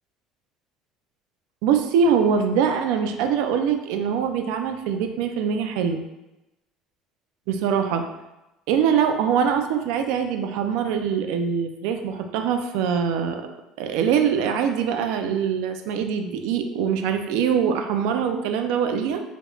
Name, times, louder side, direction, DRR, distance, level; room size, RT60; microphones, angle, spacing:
voice 1, 1.6-6.0 7.5-8.1 8.7-13.5 13.8-19.2, right 7 dB, 80° right, 6 dB, 0.3 m, -23 dB
3.4 x 2.3 x 3.0 m, 0.97 s
cardioid pair, 130°, 0 cm